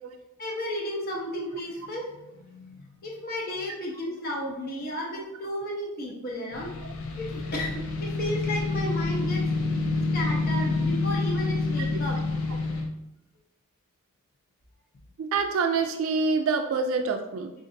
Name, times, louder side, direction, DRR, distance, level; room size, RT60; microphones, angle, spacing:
voice 1, 0.4-6.7 7.2-7.7 8.0-9.4 10.1-12.2, equal, 45° left, -3 dB, 0.7 m, -33 dB
sound 1, 6.5-12.9, left 3 dB, 80° left, 0.5 m, -28 dB
voice 2, 15.2-17.5, right 4 dB, 70° right, 5 dB, 0.3 m, -26 dB
5.1 x 2.5 x 2.6 m, 0.92 s
head